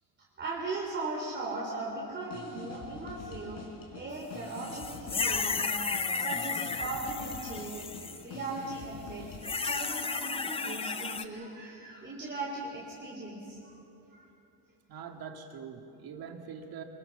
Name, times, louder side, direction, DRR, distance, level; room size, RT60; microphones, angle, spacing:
voice 1, 0.4-3.7 3.9-5.7 6.2-9.4 9.6-13.8 14.1-14.2, right 3 dB, 25° right, -4 dB, 3.5 m, -38 dB
sound 1, 2.2-9.6, left 4 dB, 50° left, 4.8 m, -46 dB
sound 2, 4.6-8.2 9.4-11.2, left 4 dB, 15° left, 0.6 m, -33 dB
voice 2, 14.9-16.8, right 6 dB, 55° right, 4 dB, 2.3 m, -44 dB
24.0 x 22.5 x 6.7 m, 2.8 s
cardioid pair, 125°, 43 cm